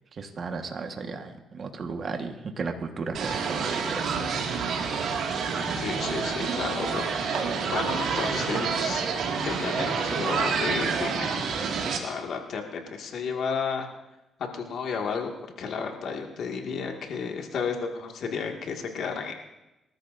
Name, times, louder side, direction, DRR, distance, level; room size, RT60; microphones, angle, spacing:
voice 1, 0.1-4.2, right 4 dB, 45° right, 5 dB, 1.5 m, -35 dB
sound 1, 3.1-12.0, right 5 dB, 75° right, 2.1 m, -28 dB
voice 2, 5.7-9.0 9.5-11.4 12.0-13.9 14.5-19.3, left 5 dB, 70° left, 2 dB, 2.0 m, -32 dB
26.0 x 13.0 x 2.7 m, 0.97 s
cardioid pair, 90°, 0 cm